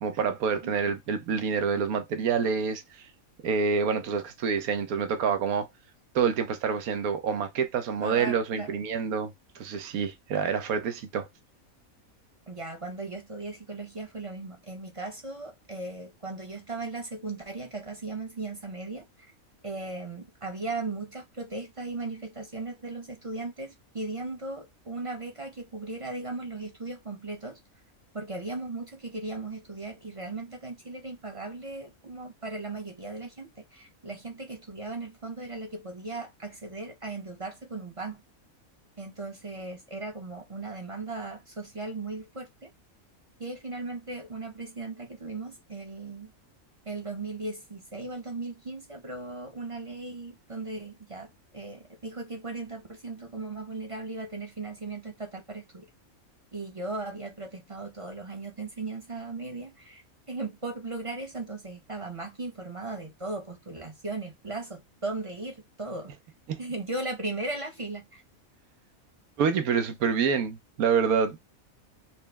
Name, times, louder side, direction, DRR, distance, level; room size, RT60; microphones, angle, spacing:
voice 1, 0.0-2.8 3.4-5.7 6.1-11.3 66.5-66.6 69.4-71.4, right 6 dB, 85° right, 1.2 m, -27 dB
voice 2, 8.0-8.8 12.5-19.3 19.6-27.6 28.1-38.2 39.0-42.7 43.4-46.3 46.9-55.9 56.5-60.0 60.3-66.1 66.6-68.2, right 3 dB, 30° right, 0.6 m, -37 dB
4.2 x 2.1 x 3.3 m
omnidirectional pair, 1.5 m